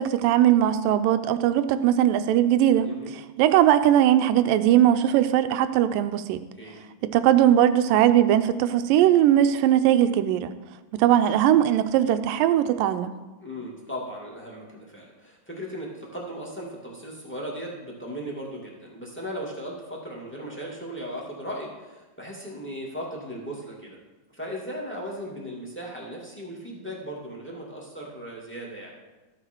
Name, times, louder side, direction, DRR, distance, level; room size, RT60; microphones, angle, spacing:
voice 1, 0.0-2.9 3.4-6.4 7.0-10.5 10.9-13.2, right 11 dB, 85° right, 11 dB, 2.2 m, -20 dB
voice 2, 2.8-3.1 6.6-6.8 13.4-24.0 24.3-28.9, equal, 5° left, -2 dB, 1.5 m, -37 dB
14.0 x 9.0 x 4.6 m, 1.2 s
omnidirectional pair, 4.1 m